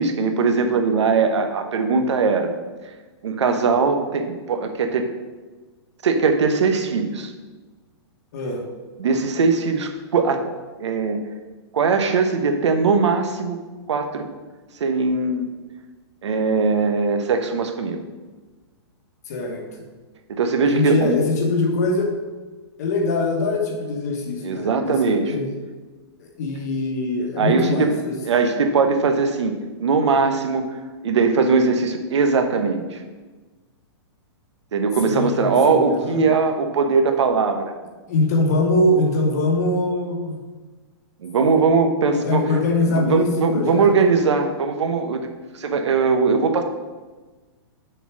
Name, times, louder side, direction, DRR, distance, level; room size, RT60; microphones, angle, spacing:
voice 1, 0.0-2.5 3.2-5.1 6.0-7.3 9.0-10.4 10.8-11.2 11.7-13.6 13.9-14.3 14.8-15.5 16.2-18.0 20.3-21.2 24.4-25.3 27.4-27.9 28.2-33.0 34.7-37.7 41.2-42.6 42.9-45.2 45.5-46.6, right 4 dB, 85° right, 6 dB, 1.0 m, -20 dB
voice 2, 8.3-8.6 19.3-19.6 20.7-22.1 22.8-25.5 26.2-28.1 35.0-36.2 38.1-40.4 42.1-43.9, left 2 dB, 35° left, 2 dB, 1.2 m, -23 dB
6.7 x 4.2 x 6.1 m, 1.3 s
hypercardioid pair, 180°, 14 cm